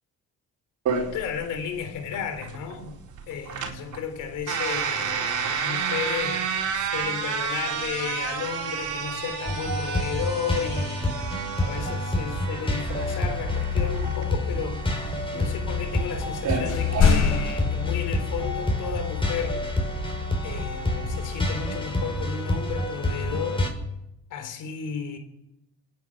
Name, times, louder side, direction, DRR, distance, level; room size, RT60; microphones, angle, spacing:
sound 1, 0.9-17.1, right 6 dB, 70° right, 4.3 m, -31 dB
voice 1, 1.0-2.9 3.3-6.4 6.7-11.1 11.6-19.7 20.4-23.7 24.3-25.2, left 7 dB, 90° left, 3.8 m, -33 dB
Electropop Base Loop, 9.5-23.7, left 2 dB, 15° left, 6.2 m, -28 dB
sound 2, 16.7-18.3 20.8-20.9, left 6 dB, 60° left, 4.9 m, -23 dB
28.0 x 10.5 x 8.9 m
cardioid pair, 90°, 30 cm